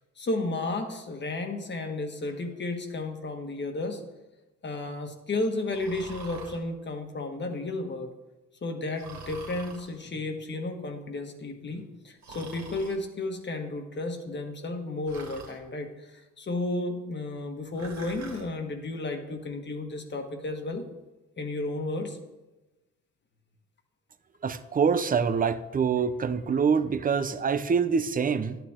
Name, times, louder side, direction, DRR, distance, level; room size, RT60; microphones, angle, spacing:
voice 1, 0.2-4.0 4.6-8.1 8.6-20.8 21.4-22.2, left 2 dB, 35° left, 4 dB, 1.6 m, -33 dB
Breathing, 5.7-6.6 9.0-9.9 12.2-13.0 15.1-15.6 17.7-18.5, right 3 dB, 65° right, 2.2 m, -44 dB
voice 2, 24.4-28.6, right 6 dB, 30° right, 12 dB, 0.6 m, -25 dB
11.5 x 9.1 x 3.7 m, 1.1 s
cardioid pair, 90°, 30 cm